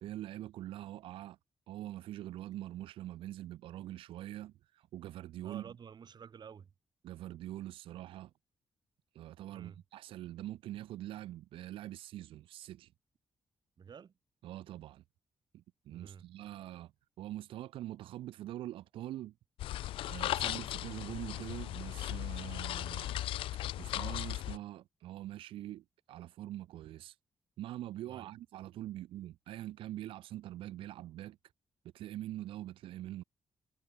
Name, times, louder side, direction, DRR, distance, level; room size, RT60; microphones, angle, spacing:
voice 1, 0.0-1.4 1.7-5.7 7.0-8.3 9.1-12.9 14.4-15.0 15.5-16.9 17.2-19.3 20.1-23.2 23.8-27.2 27.6-31.4 31.9-33.2, right 14 dB, 85° right, 0.4 m, -44 dB
voice 2, 5.4-6.7 9.5-9.8 13.8-14.1 15.9-16.3 28.0-28.3, right 7 dB, 55° right, 1.1 m, -51 dB
sound 1, 19.6-24.6, left 14 dB, 90° left, 0.4 m, -37 dB
cardioid pair, 65°, 9 cm